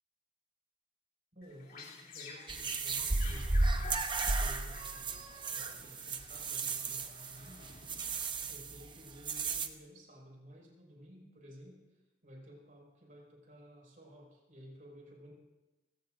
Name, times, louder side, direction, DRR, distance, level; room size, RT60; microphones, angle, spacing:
voice 1, 1.3-4.0 4.4-5.2 5.5-7.7 8.5-11.8 12.2-15.3, equal, 50° right, -2 dB, 5.7 m, -54 dB
sound 1, 1.4-8.7, left 4 dB, 50° left, 3.0 m, -51 dB
sound 2, 2.5-9.7, right 3 dB, 25° right, 0.9 m, -34 dB
29.5 x 17.0 x 2.6 m, 1.1 s
head